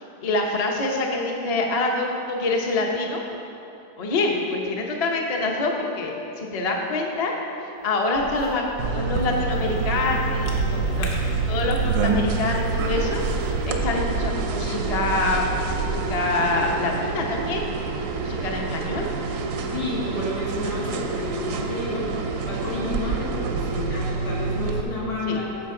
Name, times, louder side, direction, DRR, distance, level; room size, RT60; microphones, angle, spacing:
voice 1, 0.2-3.2 4.0-6.1 6.4-7.3 7.6-11.1 11.5-13.2 13.7-15.5 15.9-17.6 18.2-19.1 25.3-25.4, left 2 dB, 40° left, 0 dB, 0.5 m, -25 dB
Cough / Chewing mastication, 7.8-13.7, left 2 dB, 60° left, 1.4 m, -43 dB
sound 1, 8.1-15.9, right 4 dB, 85° right, 1.4 m, -30 dB
sound 2, 8.8-24.8, right 4 dB, 65° right, 0.8 m, -28 dB
voice 2, 19.7-25.7, left 2 dB, 85° left, -7 dB, 2.6 m, -30 dB
13.5 x 5.1 x 3.7 m, 2.9 s
omnidirectional pair, 1.8 m